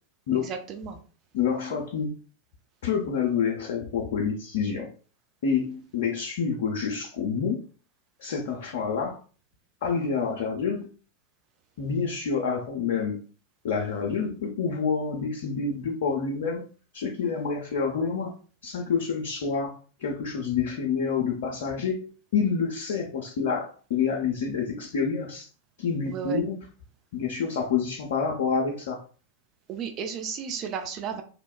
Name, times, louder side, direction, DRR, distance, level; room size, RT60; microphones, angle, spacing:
voice 1, 0.4-1.0 26.1-26.4 29.7-31.2, right 7 dB, 35° right, 5 dB, 0.3 m, -33 dB
voice 2, 1.3-2.1 2.8-4.9 5.4-7.6 8.2-9.2 9.8-10.9 11.8-13.2 13.6-16.6 16.9-18.3 18.6-25.5 25.8-26.6 27.1-29.0, left 6 dB, 55° left, 0 dB, 0.4 m, -28 dB
3.0 x 2.0 x 2.2 m, 0.39 s
figure-of-eight pair, 90°, 0 cm